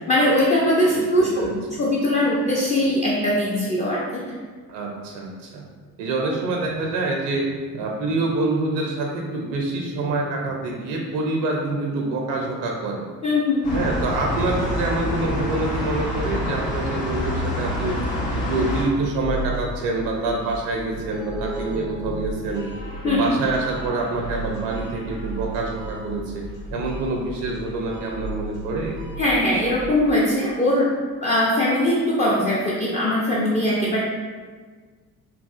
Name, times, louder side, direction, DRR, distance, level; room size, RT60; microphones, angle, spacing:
voice 1, 0.0-1.5 1.8-4.3 13.2-13.8 23.0-23.2 29.2-30.9 31.2-34.0, left 1 dB, 15° left, -6 dB, 0.4 m, -21 dB
voice 2, 0.9-1.8 4.7-5.6 6.0-7.4 7.7-13.1 13.7-18.0 18.3-22.6 23.0-26.4 26.7-29.0, right 2 dB, 55° right, 0 dB, 0.5 m, -26 dB
sound 1, 13.6-18.8, left 1 dB, 70° left, 0.8 m, -26 dB
sound 2, 17.8-29.9, right 2 dB, 50° left, 1.0 m, -35 dB
3.3 x 2.3 x 2.3 m, 1.5 s
figure-of-eight pair, 45°, 47 cm